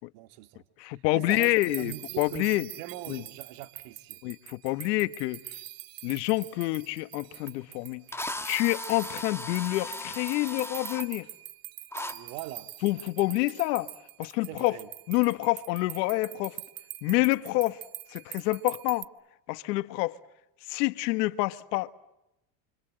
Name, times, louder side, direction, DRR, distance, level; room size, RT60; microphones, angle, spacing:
voice 1, 0.0-4.2 12.1-12.7 14.5-14.9, right 15 dB, 70° right, 2.4 m, -42 dB
voice 2, 0.8-2.7 3.1-3.2 4.2-5.4 6.0-8.0 8.4-11.3 12.8-13.9 14.2-14.8 15.1-16.6 17.0-17.8 18.1-19.1 19.5-20.2 20.7-21.9, left 20 dB, 80° left, 1.4 m, -27 dB
sound 1, 1.3-19.0, right 15 dB, 45° right, 1.2 m, -44 dB
Drill, 7.5-7.6 8.1-11.0 11.9-12.1, left 2 dB, 5° left, 1.6 m, -37 dB
30.0 x 26.0 x 7.7 m
supercardioid pair, 105°, 49 cm